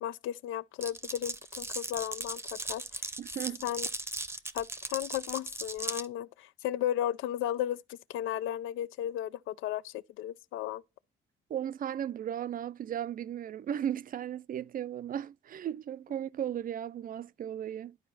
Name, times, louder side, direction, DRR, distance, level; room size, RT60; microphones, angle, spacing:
voice 1, 0.0-3.0 3.6-3.9 4.5-10.8, left 11 dB, 85° left, 0.4 m, -35 dB
Glass, 0.8-6.1, right 2 dB, 10° right, 0.7 m, -38 dB
voice 2, 3.2-3.6 11.5-18.0, right 10 dB, 45° right, 0.4 m, -36 dB
11.5 x 4.3 x 2.5 m
cardioid pair, 90°, 20 cm